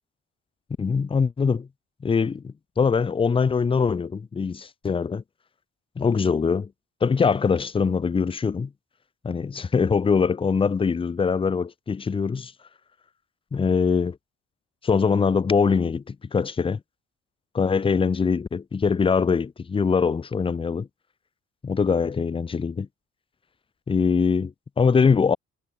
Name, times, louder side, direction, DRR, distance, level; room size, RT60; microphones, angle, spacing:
voice 1, 0.8-1.7 2.0-5.2 6.0-6.7 7.0-8.7 9.2-12.5 13.5-14.2 14.8-16.8 17.5-20.9 21.6-22.9 23.9-25.4, left 5 dB, 20° left, 0.4 m, -23 dB
cardioid pair, 90°, 30 cm